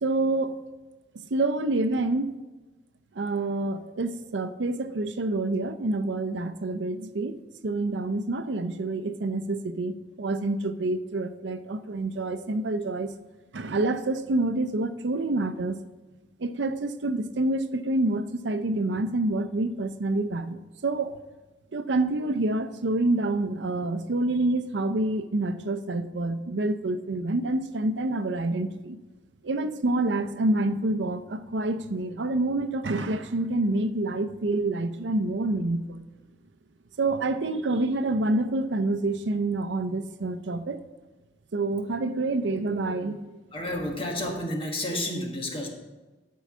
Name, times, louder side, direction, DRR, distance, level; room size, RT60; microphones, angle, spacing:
voice 1, 0.0-0.7 1.3-2.4 3.1-7.4 7.6-13.1 13.5-15.8 16.4-21.2 21.7-29.0 29.4-36.0 37.0-40.8 41.5-43.4, right 2 dB, 85° right, 11 dB, 0.6 m, -27 dB
voice 2, 43.5-45.7, left 1 dB, 30° left, 1 dB, 1.5 m, -30 dB
12.5 x 4.7 x 6.0 m, 1.2 s
head